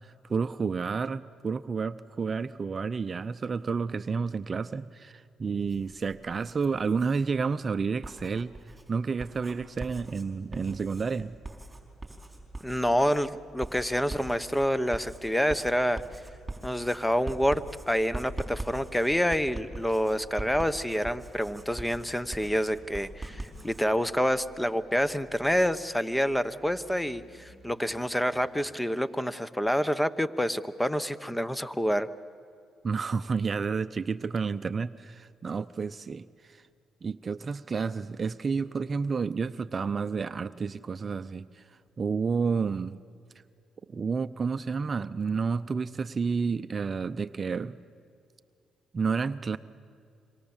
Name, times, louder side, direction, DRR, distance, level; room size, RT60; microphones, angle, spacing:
voice 1, 0.3-8.5 8.9-11.3 32.8-36.6 37.0-41.6 42.0-43.0 43.9-47.8 48.9-49.6, right 5 dB, 40° right, 14 dB, 0.6 m, -30 dB
Writing, 5.6-7.2 7.9-23.9, right 2 dB, 15° right, 4.7 m, -42 dB
sound 1, 10.6-15.2 16.1-28.8, equal, 30° left, 3.2 m, -55 dB
voice 2, 12.6-16.0 16.6-32.1, equal, 5° left, 15 dB, 1.0 m, -27 dB
26.0 x 24.0 x 7.3 m, 2.4 s
supercardioid pair, 65°, 0 cm